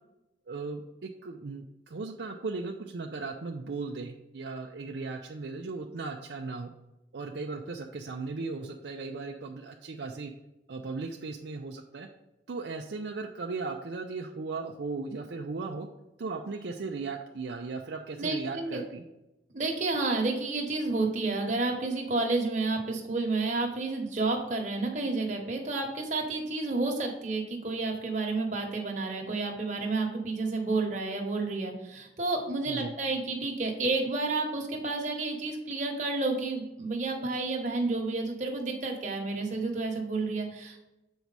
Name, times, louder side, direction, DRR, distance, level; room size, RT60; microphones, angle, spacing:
voice 1, 0.5-6.7 7.1-10.3 10.7-12.1 12.5-15.9 16.2-19.0 32.7-33.0, right 3 dB, 70° right, 2 dB, 0.5 m, -37 dB
voice 2, 18.2-18.8 19.5-40.8, right 3 dB, 40° right, 1 dB, 1.2 m, -30 dB
7.1 x 4.6 x 4.0 m, 0.93 s
head